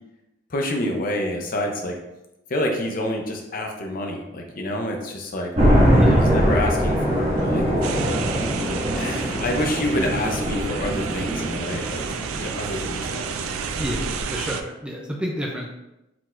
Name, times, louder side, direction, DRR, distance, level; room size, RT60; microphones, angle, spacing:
voice 1, 0.5-1.9 2.5-5.5 6.1-7.6 9.0-13.3, left 1 dB, 45° left, 2 dB, 0.6 m, -27 dB
sound 1, 5.5-14.2, equal, 30° right, 1.1 m, -22 dB
voice 2, 5.9-6.3 13.7-15.7, equal, 5° right, -1 dB, 0.4 m, -30 dB
sound 2, 7.8-14.6, right 6 dB, 90° right, 0.4 m, -31 dB
4.6 x 3.9 x 2.4 m, 0.93 s
head